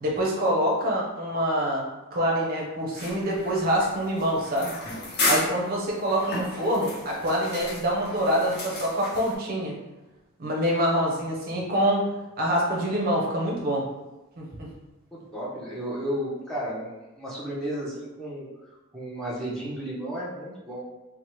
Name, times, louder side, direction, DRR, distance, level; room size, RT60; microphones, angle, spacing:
voice 1, 0.0-1.8 2.1-4.7 5.2-9.7 10.4-12.0 12.4-13.9 14.4-14.7, equal, 45° right, -2 dB, 0.5 m, -25 dB
sound 1, 2.9-9.3, left 2 dB, 50° left, 0.6 m, -33 dB
voice 2, 15.1-18.5 18.9-20.8, equal, 5° left, -8 dB, 0.5 m, -33 dB
2.8 x 2.0 x 2.9 m, 1.1 s
head